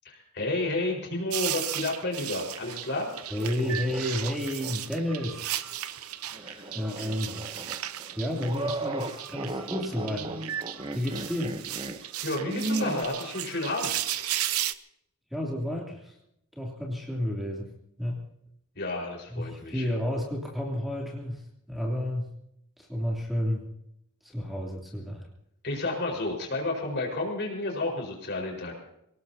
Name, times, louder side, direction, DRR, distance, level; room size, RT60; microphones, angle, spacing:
voice 1, 0.0-3.1 6.3-6.7 7.0-7.1 12.2-14.0 18.7-19.9 25.6-28.8, left 2 dB, 50° left, 0 dB, 4.8 m, -31 dB
sound 1, 1.3-14.7, right 12 dB, 75° right, 0.7 m, -35 dB
sound 2, 3.1-4.8 5.2-5.3 6.3-13.0, right 2 dB, 25° right, 1.0 m, -36 dB
voice 2, 3.3-5.9 6.7-7.7 8.2-10.3 10.9-11.6 15.3-16.2 16.5-17.7 18.0-18.2 19.3-22.3 22.8-23.6 24.2-25.3, left 1 dB, ahead, -2 dB, 2.9 m, -31 dB
26.0 x 18.5 x 2.8 m, 0.77 s
head